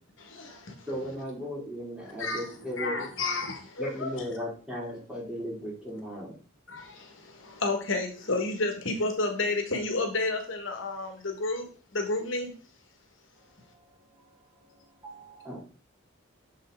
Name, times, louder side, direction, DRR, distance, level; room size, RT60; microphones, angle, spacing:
voice 1, 0.2-0.9 2.2-4.2 6.7-12.5, left 2 dB, 70° left, 1.5 m, -31 dB
voice 2, 0.9-3.1 3.8-6.4 15.4-15.6, equal, 5° right, 2.6 m, -36 dB
voice 3, 13.6-15.6, right 1 dB, 25° right, 1.6 m, -52 dB
6.7 x 5.7 x 3.7 m
head